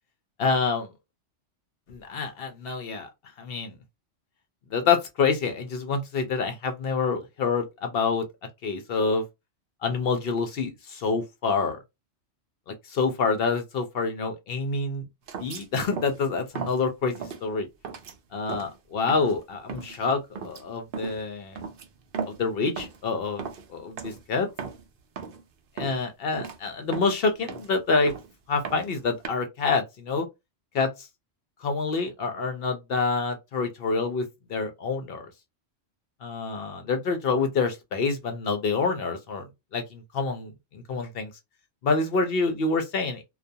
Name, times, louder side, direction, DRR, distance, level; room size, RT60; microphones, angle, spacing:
voice 1, 0.4-0.9 1.9-3.1 3.4-3.8 4.7-8.2 8.6-9.2 9.8-11.8 12.7-15.1 15.4-17.7 18.3-21.6 22.3-23.4 23.7-24.5 25.8-28.1 28.5-30.3 30.7-31.1 31.6-35.3 36.2-39.5 39.7-41.3 41.8-43.2, left 4 dB, 60° left, 0.7 m, -27 dB
sound 1, 15.3-15.7 15.9-16.2 16.5-16.8 17.1-17.4 17.8-18.2 18.5-18.8 19.1-19.4 19.7-20.0 20.4-20.6 20.9-21.2 21.6-22.5 22.8-23.1 23.4-23.7 24.0-24.2 24.5-24.9 25.2-25.4 25.8-26.0 26.3-26.6 26.9-27.8 28.1-28.3 28.6-29.3, right 6 dB, 60° right, 0.6 m, -36 dB
2.3 x 2.2 x 2.6 m
omnidirectional pair, 1.3 m